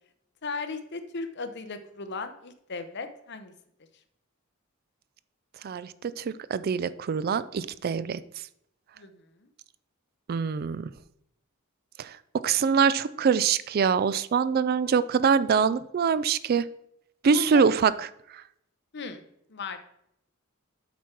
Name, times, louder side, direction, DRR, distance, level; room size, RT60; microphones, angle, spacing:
voice 1, 0.4-3.5 9.0-9.1 9.4-9.5 17.3-17.6 18.9-19.2 19.5-19.8, left 4 dB, 55° left, 9 dB, 0.8 m, -36 dB
voice 2, 5.6-8.2 10.3-10.9 12.0-12.1 12.4-16.6 17.2-17.9, right 6 dB, 45° right, 16 dB, 0.3 m, -24 dB
8.1 x 6.0 x 4.4 m, 0.76 s
head